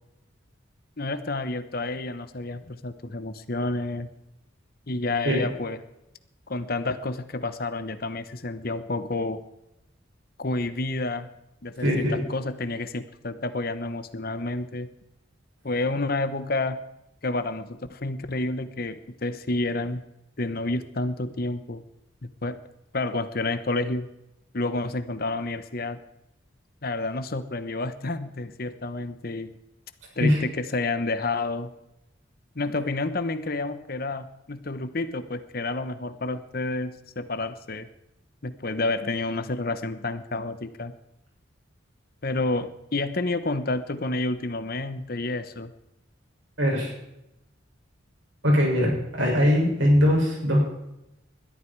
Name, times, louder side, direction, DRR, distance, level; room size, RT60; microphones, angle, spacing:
voice 1, 1.0-4.1 4.9-5.8 6.5-9.4 10.4-11.3 11.6-14.9 15.6-16.8 17.2-20.0 20.4-21.8 22.2-22.6 22.9-24.1 24.5-26.0 26.8-29.6 30.2-31.7 32.5-37.9 38.4-40.9 42.2-45.7, left 2 dB, 50° left, 11 dB, 1.1 m, -29 dB
voice 2, 11.8-12.2 30.2-30.4 46.6-46.9 48.4-50.6, equal, 65° right, -1 dB, 7.2 m, -21 dB
21.5 x 13.5 x 4.8 m, 0.88 s
head